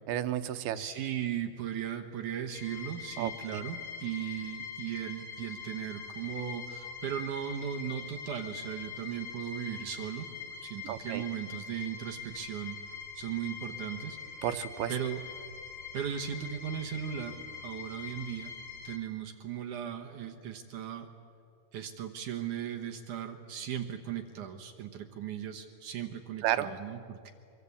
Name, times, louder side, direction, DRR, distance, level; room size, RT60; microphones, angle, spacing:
voice 1, 0.1-0.8 3.2-3.6 10.8-11.2 14.4-14.9 26.4-26.7, right 12 dB, 85° right, 9 dB, 2.8 m, -32 dB
voice 2, 0.7-10.3 10.6-12.8 13.2-14.2 14.9-15.2 15.9-17.4 17.6-18.5 18.8-21.1 21.7-27.3, right 9 dB, 65° right, 4 dB, 2.3 m, -37 dB
sound 1, 2.5-19.0, left 6 dB, 50° left, 1.9 m, -43 dB
24.5 x 23.5 x 8.4 m, 2.5 s
omnidirectional pair, 4.4 m